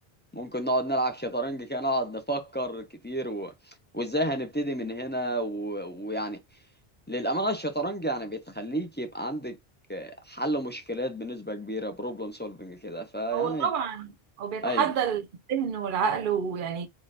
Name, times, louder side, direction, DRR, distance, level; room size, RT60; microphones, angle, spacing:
voice 1, 0.3-6.4 7.1-9.6 9.9-13.7 14.6-14.9, right 1 dB, 15° left, 0.4 m, -31 dB
voice 2, 13.3-14.1 14.4-15.2 15.5-16.9, right 7 dB, 60° right, 0.8 m, -28 dB
4.1 x 2.4 x 3.2 m
omnidirectional pair, 1.0 m